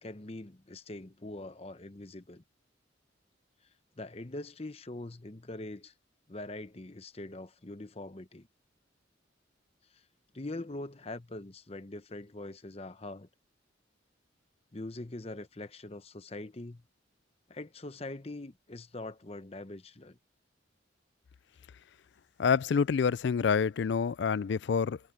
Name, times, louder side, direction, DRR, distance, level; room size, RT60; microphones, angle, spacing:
voice 1, 0.0-2.4 4.0-5.9 6.3-8.5 9.9-10.0 10.3-13.3 14.7-16.8 17.5-20.2, left 2 dB, 30° left, 0.9 m, -43 dB
voice 2, 22.4-25.0, left 6 dB, 65° left, 0.4 m, -27 dB
head